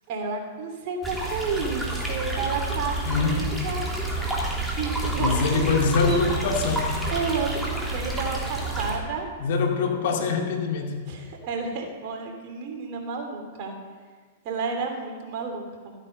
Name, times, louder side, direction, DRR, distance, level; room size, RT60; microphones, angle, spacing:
voice 1, 0.1-3.9 4.8-5.4 6.1-6.2 7.1-9.3 11.0-13.7 14.4-15.9, right 4 dB, 50° right, 2 dB, 2.7 m, -31 dB
sound 1, 1.0-9.0, right 2 dB, 5° right, 2.9 m, -29 dB
voice 2, 3.0-3.5 5.2-7.0 9.4-11.0, left 4 dB, 65° left, 2 dB, 2.2 m, -24 dB
14.0 x 8.8 x 5.3 m, 1.5 s
hypercardioid pair, 120°, 0 cm